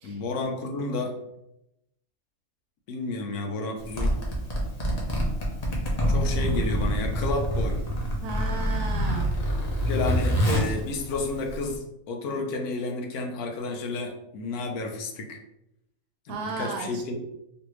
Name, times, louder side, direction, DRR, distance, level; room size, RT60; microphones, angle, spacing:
voice 1, 0.0-1.1 2.9-4.1 6.1-7.8 9.9-15.4 16.3-17.3, left 2 dB, 75° left, 3 dB, 1.1 m, -31 dB
Zipper (clothing), 3.8-11.8, equal, 55° left, 0.4 m, -26 dB
voice 2, 8.2-9.3 16.3-17.0, right 3 dB, 75° right, 2 dB, 1.1 m, -34 dB
3.2 x 2.6 x 3.0 m, 0.84 s
omnidirectional pair, 1.7 m